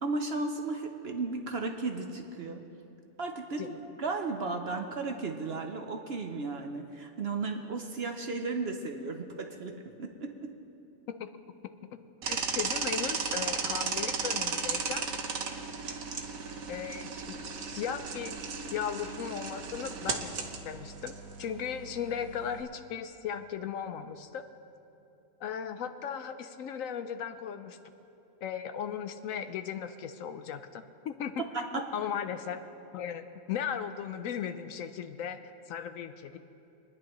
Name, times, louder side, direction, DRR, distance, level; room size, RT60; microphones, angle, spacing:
voice 1, 0.0-2.6 3.2-10.5 31.5-31.9, right 3 dB, 50° right, 4 dB, 0.9 m, -35 dB
sound 1, 12.2-22.6, right 5 dB, 70° right, 1.4 m, -35 dB
voice 2, 12.3-15.1 16.7-17.4 17.7-18.4 18.7-24.5 25.4-27.8 28.4-31.4 31.7-32.6 32.9-36.4, left 8 dB, 70° left, 9 dB, 0.9 m, -37 dB
24.0 x 10.5 x 3.0 m, 2.8 s
omnidirectional pair, 1.5 m